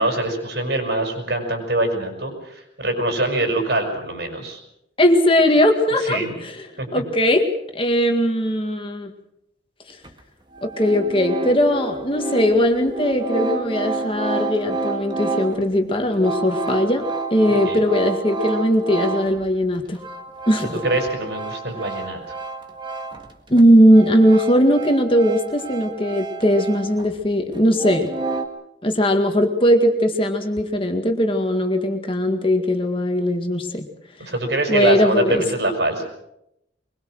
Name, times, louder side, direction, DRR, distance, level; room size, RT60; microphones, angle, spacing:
voice 1, 0.0-4.6 6.0-6.4 6.8-6.9 17.5-17.8 20.8-22.2 34.3-36.1, right 2 dB, 65° right, 4 dB, 6.1 m, -24 dB
voice 2, 5.0-6.6 6.9-7.5 7.7-9.1 10.6-17.0 17.3-20.0 20.5-20.8 23.5-28.1 28.8-33.9 34.7-35.4, equal, 30° left, 4 dB, 2.0 m, -19 dB
sound 1, 10.0-10.1 10.5-19.4 19.8-23.3 23.6-27.2 27.5-28.5, right 3 dB, 25° right, 1.8 m, -29 dB
23.5 x 22.0 x 6.5 m, 0.81 s
head